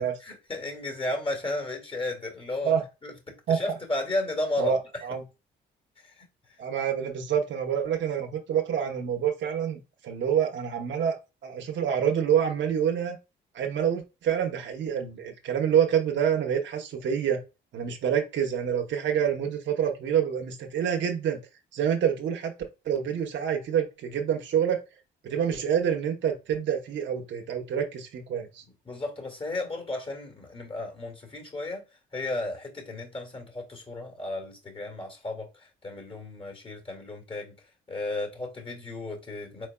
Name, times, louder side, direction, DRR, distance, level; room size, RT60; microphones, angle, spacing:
voice 1, 0.2-2.7 3.0-5.1 6.0-6.3 25.3-25.6 28.9-31.8 32.1-37.5 37.9-39.7, left 2 dB, 30° left, 2.1 m, -34 dB
voice 2, 4.6-5.2 6.6-11.2 11.4-13.2 13.5-17.4 17.7-21.4 21.7-22.5 22.8-24.8 25.2-28.6, right 8 dB, 65° right, 1.0 m, -27 dB
4.6 x 4.2 x 2.2 m
cardioid pair, 90°, 20 cm